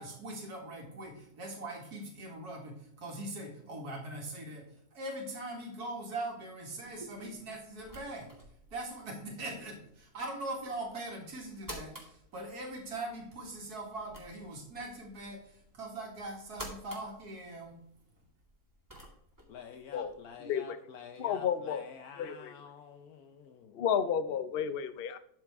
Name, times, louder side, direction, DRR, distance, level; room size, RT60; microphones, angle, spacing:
voice 1, 0.0-8.3 8.7-17.7, right 2 dB, 75° right, 0 dB, 2.5 m, -41 dB
sound 1, 6.7-20.3, right 1 dB, 10° right, 2.2 m, -53 dB
voice 2, 19.5-23.9, left 7 dB, 70° left, 5 dB, 1.2 m, -49 dB
voice 3, 20.4-20.8 21.2-21.8 22.2-22.5 23.7-25.2, left 8 dB, 55° left, 11 dB, 0.7 m, -32 dB
12.0 x 6.6 x 3.5 m, 0.70 s
omnidirectional pair, 1.7 m